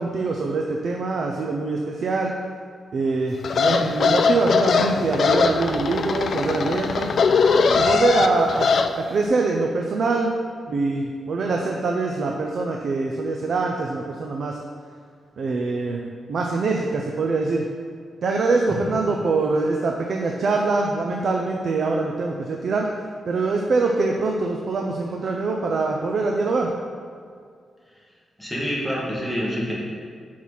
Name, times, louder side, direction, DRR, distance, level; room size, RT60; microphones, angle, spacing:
voice 1, 0.0-2.3 2.9-7.1 7.8-8.7 8.9-10.3 10.7-14.6 15.4-17.7 18.2-22.9 23.3-26.7, right 3 dB, 55° right, 1 dB, 0.5 m, -24 dB
sound 1, 3.4-8.9, left 5 dB, 55° left, 0.4 m, -20 dB
voice 2, 28.4-29.7, equal, 5° right, -5 dB, 1.4 m, -26 dB
5.8 x 4.7 x 5.5 m, 2.1 s
wide cardioid pair, 150°, 0 cm